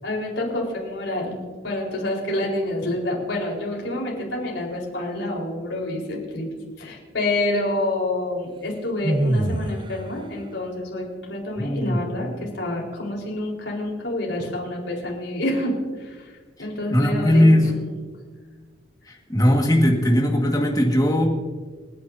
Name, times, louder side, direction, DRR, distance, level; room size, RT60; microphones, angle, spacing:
voice 1, 0.0-6.5 6.8-17.7, left 1 dB, 75° left, -3 dB, 4.6 m, -28 dB
sound 1, 9.0-9.9, right 1 dB, 25° right, 0.6 m, -22 dB
voice 2, 11.6-12.0 16.9-17.7 19.1-21.3, left 1 dB, 20° left, 1 dB, 1.9 m, -18 dB
29.0 x 9.7 x 2.8 m, 1.5 s
head